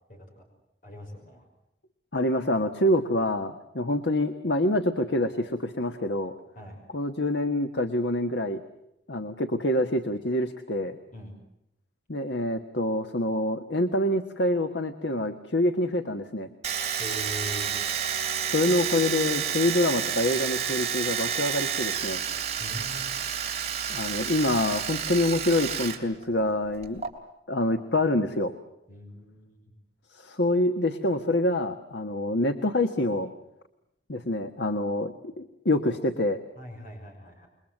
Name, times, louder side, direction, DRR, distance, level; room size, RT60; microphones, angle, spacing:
voice 1, 0.1-0.4 0.8-1.5 6.6-6.8 11.1-11.3 17.0-17.7 22.6-23.3 28.9-29.7 36.6-37.5, left 1 dB, 45° left, 3 dB, 5.8 m, -41 dB
voice 2, 2.1-6.3 6.9-8.6 9.1-11.0 12.1-16.5 18.4-22.2 23.9-27.1 27.5-28.5 30.1-33.3 34.1-36.4, left 1 dB, 85° left, 8 dB, 1.4 m, -26 dB
Domestic sounds home sounds, 16.6-26.0 26.2-27.1, right 8 dB, 40° right, 3.4 m, -30 dB
28.5 x 22.0 x 7.9 m, 0.84 s
head